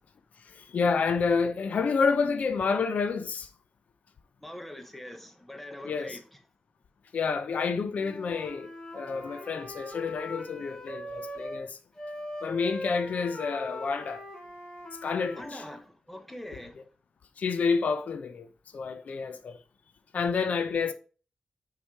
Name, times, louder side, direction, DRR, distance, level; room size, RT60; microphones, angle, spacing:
voice 1, 0.4-3.5 5.8-6.2 7.1-11.8 12.4-14.2 15.0-15.6 17.4-18.5 18.7-19.6 20.1-20.9, left 5 dB, 65° left, 0.6 m, -29 dB
voice 2, 4.4-6.2 15.3-16.8, left 1 dB, 5° left, 1.0 m, -43 dB
Wind instrument woodwind instrument, 7.9-11.7 12.0-15.8, left 1 dB, 35° left, 3.0 m, -41 dB
6.4 x 4.8 x 4.7 m
wide cardioid pair, 175°, 3 cm